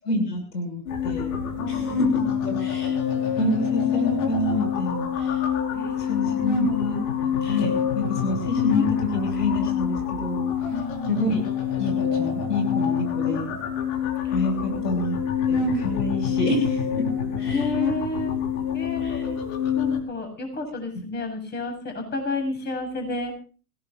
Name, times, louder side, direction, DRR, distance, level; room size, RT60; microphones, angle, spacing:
voice 1, 0.0-5.4 6.0-7.0 7.4-10.5 11.1-11.4 11.8-13.6 14.3-15.2 15.5-17.7 19.0-19.3, left 1 dB, 85° left, 7 dB, 6.5 m, -28 dB
sound 1, 0.9-20.0, left 7 dB, 55° left, 5.4 m, -26 dB
voice 2, 1.6-2.7 5.7-6.6 10.7-11.3 14.2-14.3 14.7-14.8 17.5-18.4 18.7-19.4 19.7-23.3, left 2 dB, 20° left, 4 dB, 7.9 m, -32 dB
25.5 x 17.0 x 2.7 m, 0.37 s
hypercardioid pair, 110°, 47 cm